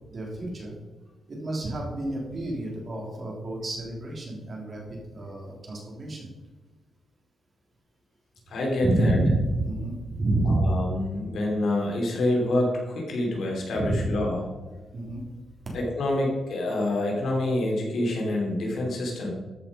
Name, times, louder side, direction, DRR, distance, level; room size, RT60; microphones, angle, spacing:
voice 1, 0.1-0.7 1.3-6.3 8.8-10.7 13.8-14.1 14.9-15.2, right 2 dB, 40° right, -2 dB, 3.5 m, -28 dB
voice 2, 8.5-9.2 10.5-14.4 15.7-19.3, left 1 dB, 70° left, -1 dB, 3.0 m, -27 dB
13.5 x 5.9 x 5.3 m, 1.2 s
cardioid pair, 110°, 0 cm